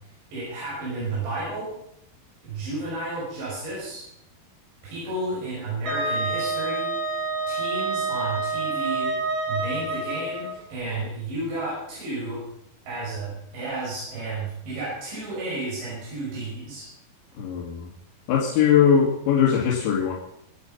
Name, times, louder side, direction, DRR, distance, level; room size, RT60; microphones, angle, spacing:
voice 1, 0.3-1.7 2.4-4.0 4.8-6.9 7.5-9.1 9.5-12.4 12.8-16.9, right 2 dB, 80° right, -7 dB, 8.3 m, -32 dB
Wind instrument woodwind instrument, 5.9-10.5, right 3 dB, 50° right, 4.6 m, -28 dB
voice 2, 17.4-17.9 18.3-20.1, left 8 dB, 85° left, -3 dB, 4.4 m, -20 dB
25.0 x 9.3 x 5.6 m, 0.75 s
omnidirectional pair, 5.1 m